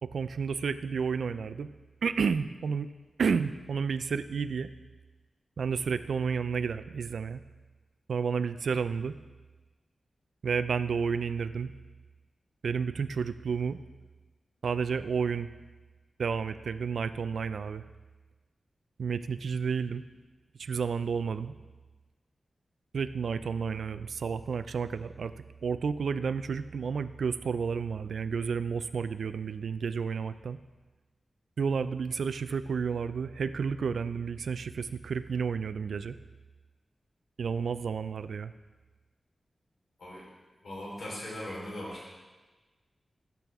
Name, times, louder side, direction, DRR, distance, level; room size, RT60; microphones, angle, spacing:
voice 1, 0.0-1.7 2.0-2.9 3.2-4.7 5.6-7.4 8.1-9.1 10.4-11.7 12.6-13.8 14.6-15.5 16.2-17.8 19.0-20.0 20.6-21.5 22.9-25.3 25.6-30.6 31.6-36.2 37.4-38.5, right 6 dB, 85° right, 13 dB, 0.4 m, -31 dB
voice 2, 40.6-42.2, left 1 dB, 70° left, -5 dB, 3.9 m, -39 dB
15.0 x 6.9 x 3.5 m, 1.2 s
wide cardioid pair, 170°, 0 cm